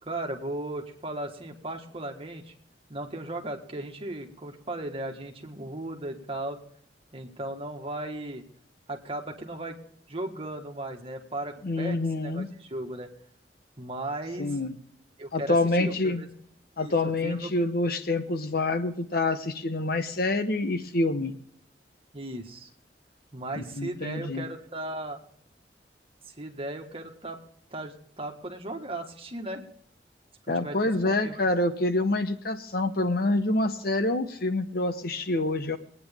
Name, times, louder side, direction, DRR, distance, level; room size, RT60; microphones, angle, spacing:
voice 1, 0.0-2.5 2.9-6.6 7.1-8.4 8.9-9.8 10.1-13.1 13.8-14.6 15.2-16.3 16.7-17.5 22.1-22.7 23.3-25.2 26.4-27.4 27.7-29.6 30.6-31.4, right 1 dB, 30° right, 3 dB, 1.7 m, -36 dB
voice 2, 11.6-12.5 14.4-14.7 15.3-16.2 16.8-21.3 23.5-24.4 30.5-35.8, left 2 dB, 55° left, 8 dB, 1.0 m, -27 dB
21.0 x 9.5 x 3.6 m, 0.64 s
head